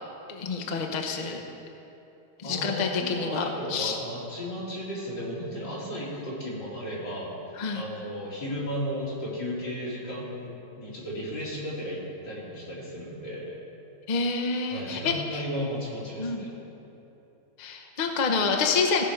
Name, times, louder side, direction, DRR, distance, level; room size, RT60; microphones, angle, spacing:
voice 1, 0.3-1.4 2.4-4.0 7.6-7.8 14.1-15.4 16.2-16.4 17.6-19.0, left 4 dB, 40° left, 2 dB, 0.7 m, -28 dB
voice 2, 2.4-7.3 7.7-13.6 14.7-16.5, equal, 80° left, -6 dB, 3.3 m, -34 dB
16.5 x 5.9 x 5.0 m, 3.0 s
omnidirectional pair, 1.9 m